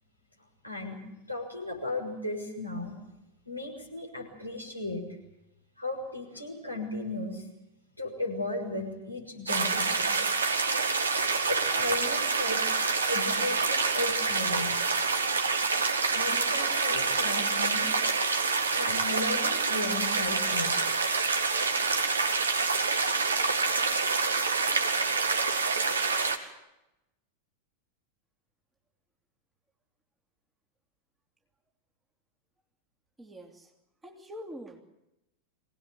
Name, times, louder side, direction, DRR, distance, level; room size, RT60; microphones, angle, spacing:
voice 1, 0.6-2.9 3.4-5.0 5.8-7.5 8.0-10.1 11.5-12.6 13.1-14.7 16.1-18.1 18.7-20.8, left 2 dB, 90° right, 2 dB, 6.8 m, -35 dB
sound 1, 9.5-26.4, right 4 dB, 75° right, 2.1 m, -27 dB
voice 2, 33.2-33.7 34.0-34.8, equal, 10° right, 3 dB, 2.9 m, -44 dB
24.5 x 18.0 x 9.3 m, 0.92 s
figure-of-eight pair, 90°, 0 cm